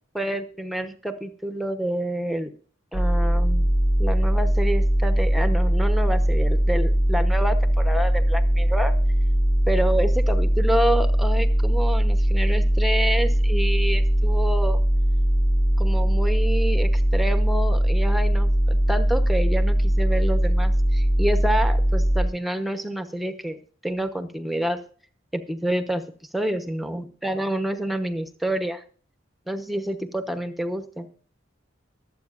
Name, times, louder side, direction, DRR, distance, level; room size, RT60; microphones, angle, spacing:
voice 1, 0.1-2.5 2.9-3.7 4.0-8.9 9.7-14.8 15.8-23.6 23.8-24.8 25.3-26.0 26.3-28.8 29.5-31.1, right 1 dB, ahead, 8 dB, 0.9 m, -28 dB
sound 1, 2.9-22.3, equal, 60° left, 4.9 m, -20 dB
24.0 x 8.3 x 2.5 m, 0.43 s
head